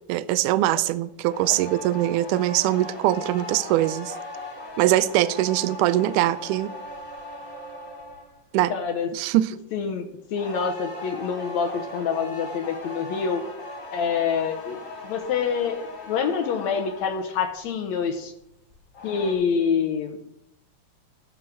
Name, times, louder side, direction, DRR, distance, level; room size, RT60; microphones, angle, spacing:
voice 1, 0.1-4.1 4.8-6.7 8.5-8.7 9.1-9.6, right 14 dB, 80° right, 2.0 m, -22 dB
sound 1, 1.2-8.4 10.3-17.4 18.7-19.3, left 2 dB, 25° left, 2.7 m, -38 dB
voice 2, 8.7-9.1 9.7-13.4 13.9-14.8 15.0-18.3 19.0-20.2, left 6 dB, 70° left, 2.0 m, -26 dB
13.0 x 7.4 x 6.4 m
omnidirectional pair, 3.7 m